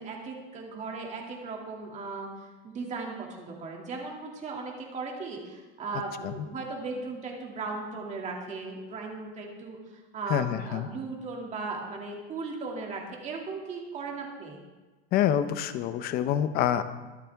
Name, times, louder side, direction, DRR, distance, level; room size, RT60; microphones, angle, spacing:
voice 1, 0.0-14.6, right 3 dB, 20° right, 0 dB, 2.4 m, -37 dB
voice 2, 10.3-10.9 15.1-16.8, left 10 dB, 30° left, 11 dB, 0.7 m, -26 dB
24.0 x 8.3 x 3.5 m, 1.2 s
supercardioid pair, 165°, 32 cm